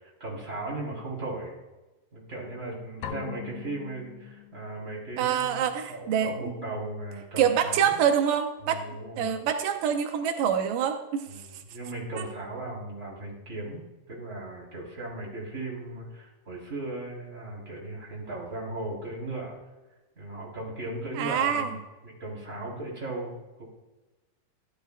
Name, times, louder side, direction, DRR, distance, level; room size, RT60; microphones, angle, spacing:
voice 1, 0.0-1.6 2.1-8.0 8.6-9.3 11.3-13.8 14.1-19.6 20.2-21.8 22.0-23.7, right 2 dB, 20° right, -4 dB, 4.0 m, -37 dB
sound 1, 3.0-4.8, left 10 dB, 90° left, 2.4 m, -40 dB
voice 2, 5.2-6.3 7.4-8.8 9.2-11.2 12.2-12.3 21.2-21.7, right 8 dB, 85° right, 6 dB, 2.4 m, -25 dB
16.0 x 11.0 x 2.4 m, 1.1 s
omnidirectional pair, 3.8 m